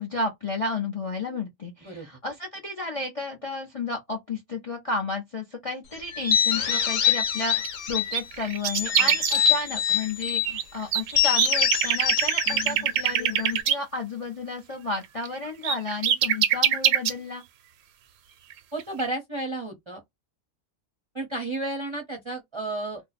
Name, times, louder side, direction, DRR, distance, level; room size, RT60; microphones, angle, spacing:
voice 1, 0.0-17.4, left 3 dB, 40° left, 0.5 m, -32 dB
sound 1, 6.1-8.2 8.6-10.5 11.1-13.6, left 8 dB, 70° left, 1.0 m, -25 dB
sound 2, 7.4-7.7 7.9-9.4 10.0-10.6 10.9-13.8 15.2-15.3 15.6-17.1 18.5-18.6 18.8-19.0, right 9 dB, 80° right, 1.0 m, -23 dB
voice 2, 18.7-20.0 21.1-23.0, right 2 dB, 30° right, 0.6 m, -32 dB
2.6 x 2.1 x 4.0 m
omnidirectional pair, 1.5 m